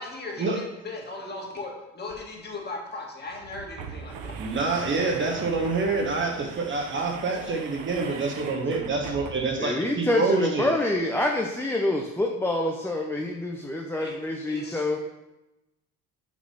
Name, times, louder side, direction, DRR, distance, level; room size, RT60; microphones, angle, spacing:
voice 1, 0.0-4.4 14.0-14.2 14.5-14.8, left 2 dB, 25° left, -2 dB, 2.1 m, -38 dB
sound 1, 2.1-2.2 2.5-2.6 3.3-9.7, right 5 dB, 60° right, 1.1 m, -39 dB
voice 2, 4.4-10.7, right 3 dB, 30° right, 2 dB, 1.2 m, -27 dB
voice 3, 9.6-15.0, left 1 dB, 5° left, 1 dB, 0.6 m, -26 dB
6.2 x 4.0 x 5.6 m, 0.96 s
supercardioid pair, 90°, 39 cm